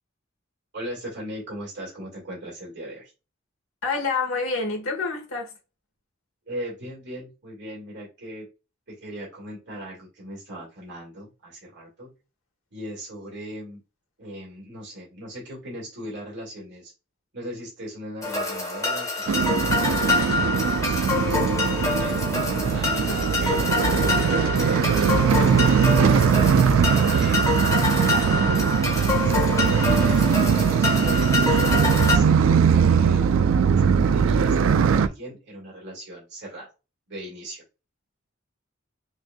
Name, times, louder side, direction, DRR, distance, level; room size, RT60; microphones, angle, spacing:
voice 1, 0.7-3.1 6.5-8.5 8.9-12.1 12.7-13.8 14.2-16.9 17.3-19.1 19.3-21.5 21.8-22.2 22.5-24.1 24.6-27.8 29.2-30.1 30.5-33.3 33.6-36.7 37.1-37.6, right 1 dB, 60° right, 1.9 m, -38 dB
voice 2, 3.8-5.5 22.9-23.3, left 4 dB, 80° left, 1.2 m, -28 dB
sound 1, 18.2-32.2, left 3 dB, 15° left, 1.3 m, -26 dB
sound 2, 19.3-35.1, right 6 dB, 75° right, 0.3 m, -20 dB
6.1 x 2.6 x 2.2 m
head